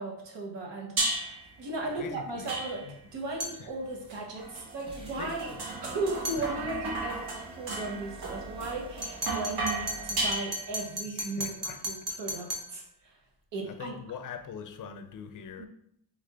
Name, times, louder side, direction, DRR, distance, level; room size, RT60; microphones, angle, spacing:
voice 1, 0.0-5.5 5.8-13.1 13.5-13.9 15.6-15.7, right 2 dB, 90° right, 1.2 m, -36 dB
sound 1, 1.0-1.5 2.5-3.1 4.1-10.9, right 2 dB, 65° right, 1.2 m, -35 dB
voice 2, 2.0-2.5 2.8-3.0 3.6-3.7 5.2-5.6 6.4-6.5 11.1-11.8 13.6-15.7, left 7 dB, 50° left, 0.4 m, -42 dB
sound 2, 3.4-3.7 6.2-6.5 9.0-12.7, equal, 35° right, 0.9 m, -36 dB
sound 3, 4.9-10.4, right 1 dB, 15° right, 0.3 m, -48 dB
3.5 x 3.3 x 3.8 m
wide cardioid pair, 150°, 42 cm